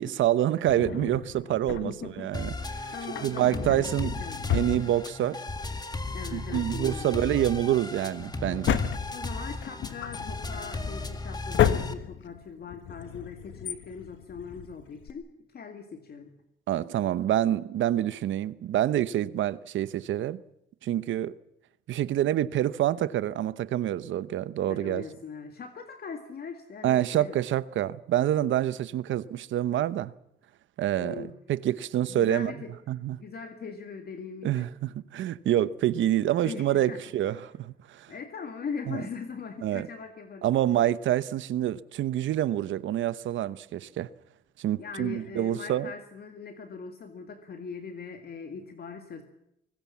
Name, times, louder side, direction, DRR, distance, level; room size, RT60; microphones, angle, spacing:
voice 1, 0.0-2.9 3.2-4.1 4.5-5.4 6.3-8.8 16.7-20.4 20.8-21.3 21.9-25.0 26.8-30.1 30.8-32.5 32.9-33.2 34.4-38.1 38.9-39.0 39.6-39.9 40.4-44.1 44.6-45.9, right 12 dB, 75° right, 0.9 m, -27 dB
Drawer open or close, 0.7-2.2 3.0-5.5 5.8-5.9 6.4-15.1, left 10 dB, 70° left, 1.4 m, -33 dB
voice 2, 1.7-2.5 2.9-4.4 6.1-7.2 9.1-16.3 24.6-27.4 31.0-31.4 32.1-32.7 33.2-34.7 36.4-37.0 37.3-37.4 38.1-40.5 44.8-49.2, left 5 dB, 50° left, 2.1 m, -40 dB
sound 1, 2.3-11.9, left 3 dB, 20° left, 1.9 m, -36 dB
23.5 x 19.5 x 7.3 m
cardioid pair, 90°, 20 cm